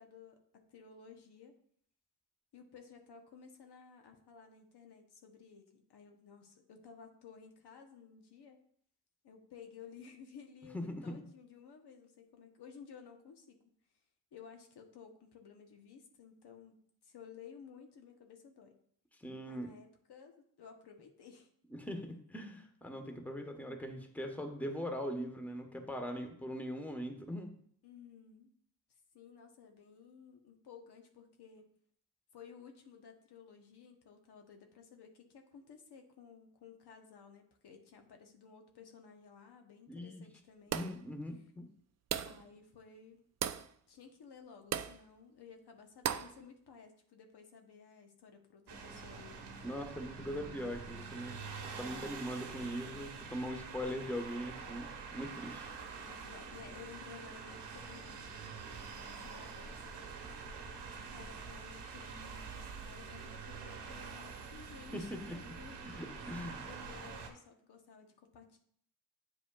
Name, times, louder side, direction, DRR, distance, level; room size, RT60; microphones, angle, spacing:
voice 1, 0.0-1.6 2.5-8.6 9.2-13.6 14.3-16.8 17.0-18.8 19.5-21.5 27.8-28.5 29.1-31.7 32.3-40.9 42.2-43.2 43.9-49.7 56.0-59.9 60.9-65.8 66.2-66.4 66.7-68.6, left 6 dB, 70° left, 4 dB, 1.0 m, -55 dB
voice 2, 10.7-11.3 19.2-19.7 21.8-27.5 39.9-40.2 40.7-41.7 49.6-51.4 51.8-55.7 64.9-65.5 65.8-66.6, equal, 5° left, 5 dB, 1.1 m, -41 dB
sound 1, 40.7-41.1 42.1-42.5 43.4-43.7 44.7-45.0 46.0-46.4, right 9 dB, 40° right, 0.4 m, -36 dB
sound 2, 48.7-67.3, right 5 dB, 75° right, 1.0 m, -46 dB
8.5 x 4.9 x 2.3 m, 0.62 s
cardioid pair, 60°, 41 cm